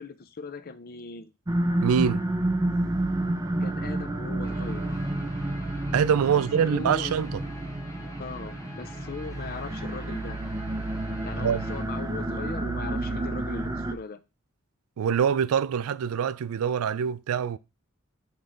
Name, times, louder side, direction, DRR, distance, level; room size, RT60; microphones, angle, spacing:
voice 1, 0.0-1.3 3.6-5.0 6.3-7.2 8.2-10.4 11.2-14.2, left 4 dB, 45° left, 0.6 m, -39 dB
sound 1, 1.5-13.9, right 1 dB, 15° right, 0.5 m, -30 dB
voice 2, 1.8-2.2 5.9-7.4 11.4-11.6 15.0-17.6, right 7 dB, 90° right, 0.4 m, -24 dB
Guitar, 4.4-11.8, left 1 dB, 15° left, 1.0 m, -47 dB
5.8 x 3.2 x 5.1 m
head